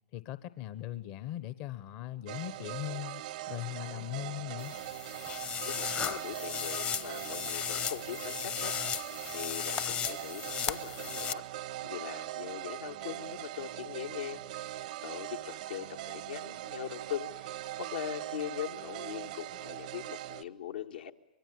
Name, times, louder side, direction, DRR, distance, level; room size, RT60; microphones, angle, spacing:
voice 1, 0.1-3.2 3.5-4.7, left 14 dB, 50° left, 14 dB, 1.0 m, -39 dB
sound 1, 2.3-20.4, right 14 dB, 65° right, 0.8 m, -41 dB
sound 2, 4.6-11.3, left 9 dB, 30° left, 0.8 m, -36 dB
voice 2, 5.7-11.5 11.8-21.1, left 9 dB, 80° left, 4 dB, 1.7 m, -41 dB
25.0 x 22.5 x 9.6 m, 0.99 s
hypercardioid pair, 110°, 5 cm